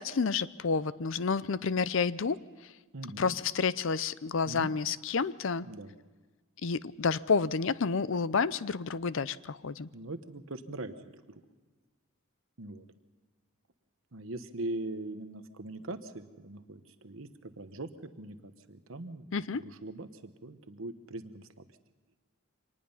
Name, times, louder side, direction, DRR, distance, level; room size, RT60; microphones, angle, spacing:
voice 1, 0.0-2.7 3.2-5.7 6.6-9.9 19.3-19.6, left 5 dB, 60° left, 17 dB, 0.5 m, -30 dB
voice 2, 2.9-3.4 4.5-4.7 5.6-5.9 9.9-11.4 12.6-12.8 14.1-19.3 19.5-21.6, right 2 dB, 65° right, 9 dB, 1.1 m, -41 dB
25.0 x 19.5 x 5.6 m, 1.3 s
head